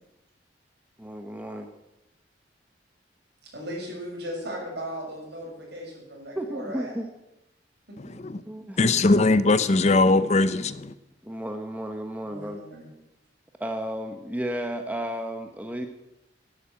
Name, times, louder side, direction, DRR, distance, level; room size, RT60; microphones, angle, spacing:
voice 1, 1.0-1.7 6.4-7.1 8.5-8.9 11.2-12.6 13.6-15.9, equal, 10° right, 1.0 m, -33 dB
voice 2, 3.5-6.9 8.1-8.2 8.6-8.7 12.2-12.9, equal, 60° right, 7.1 m, -37 dB
voice 3, 8.0-8.4 8.8-10.9, left 3 dB, 35° left, 0.6 m, -21 dB
12.0 x 11.0 x 8.5 m
head